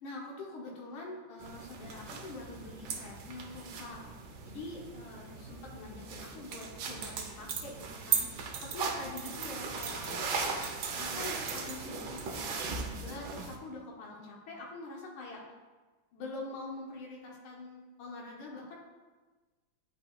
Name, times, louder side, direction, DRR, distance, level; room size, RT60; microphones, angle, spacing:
voice 1, 0.0-4.0 4.4-10.3 10.9-15.4 16.1-18.8, left 2 dB, 90° left, -2 dB, 1.8 m, -44 dB
sound 1, 1.4-13.6, right 5 dB, 65° right, 1.2 m, -38 dB
9.4 x 5.2 x 2.3 m, 1.3 s
omnidirectional pair, 2.2 m